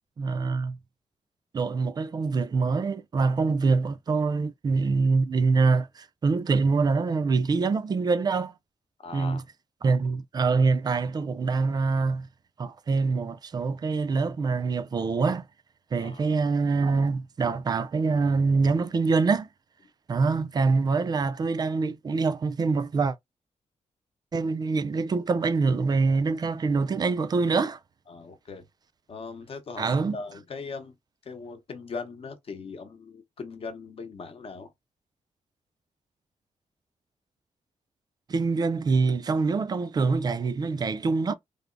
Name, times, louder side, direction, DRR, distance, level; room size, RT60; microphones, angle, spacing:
voice 1, 0.2-0.8 1.5-8.5 9.1-9.4 9.8-12.3 12.6-15.5 15.9-19.5 20.1-23.2 24.3-27.8 29.8-30.2 38.3-41.3, right 4 dB, 30° right, 0.3 m, -25 dB
voice 2, 9.0-9.4 16.0-16.4 28.1-28.6 29.1-31.0 31.2-34.7, left 4 dB, 50° left, 0.8 m, -39 dB
3.3 x 2.0 x 3.7 m
wide cardioid pair, 160°, 13 cm